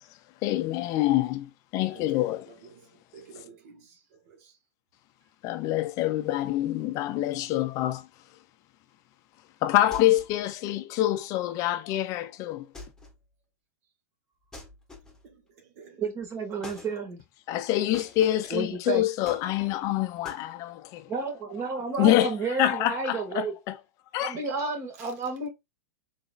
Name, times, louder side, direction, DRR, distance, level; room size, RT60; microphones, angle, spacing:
voice 1, 0.4-2.5 5.4-8.1 9.6-12.7 17.5-21.1 22.0-23.8 24.1-24.4, left 14 dB, 40° left, 0.4 m, -26 dB
voice 2, 1.9-4.6 15.2-16.0 16.5-16.7 17.9-18.3 25.0-25.1, right 6 dB, 55° right, 1.3 m, -52 dB
sound 1, 9.9-10.4 12.7-13.2 14.5-15.3 16.6-17.0 17.9-18.6 19.2-19.9 20.2-20.5, left 2 dB, 5° left, 1.5 m, -45 dB
voice 3, 16.0-17.2 18.5-19.0 21.1-23.5 24.2-25.5, right 4 dB, 35° right, 1.9 m, -31 dB
4.0 x 3.8 x 2.4 m
hypercardioid pair, 110°, 9 cm